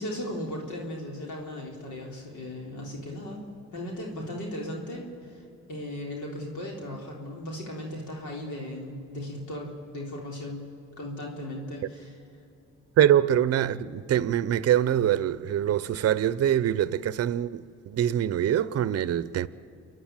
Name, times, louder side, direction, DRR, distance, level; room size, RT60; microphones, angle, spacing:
voice 1, 0.0-3.4 3.7-10.6 11.0-12.2, left 1 dB, 75° left, 3.8 m, -37 dB
voice 2, 13.0-19.5, right 10 dB, 55° right, 0.7 m, -24 dB
28.5 x 11.0 x 8.9 m
cardioid pair, 90°, 30 cm